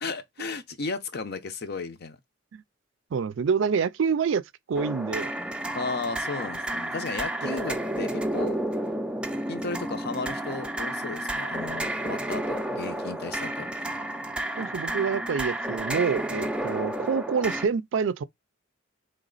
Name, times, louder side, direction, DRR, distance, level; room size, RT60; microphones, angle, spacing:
voice 1, 0.0-2.2 5.7-8.6 9.5-13.7, left 4 dB, 55° left, 0.7 m, -34 dB
voice 2, 3.1-4.4 4.7-5.3 14.6-18.2, right 6 dB, 65° right, 0.4 m, -27 dB
sound 1, 4.7-17.6, right 1 dB, 5° right, 0.4 m, -31 dB
4.0 x 3.3 x 3.8 m
head